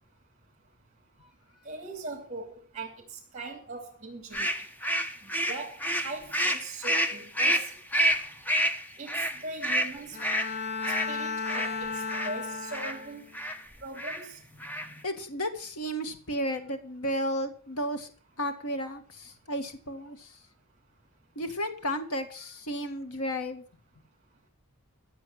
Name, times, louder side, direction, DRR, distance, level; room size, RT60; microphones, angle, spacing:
voice 1, 1.6-4.5 5.2-7.7 9.0-10.2 11.1-13.3 13.8-14.4, right 2 dB, 30° right, -1 dB, 3.2 m, -40 dB
sound 1, 4.3-12.3 12.7-13.0 13.3-13.6 14.0-14.2 14.5-15.0, equal, 10° left, 1.1 m, -29 dB
Bowed string instrument, 10.1-13.3, left 4 dB, 50° left, 1.1 m, -34 dB
voice 2, 15.0-18.1 18.4-20.3 21.4-23.6, equal, 80° left, 7 dB, 2.0 m, -33 dB
14.5 x 7.7 x 7.7 m, 0.42 s
head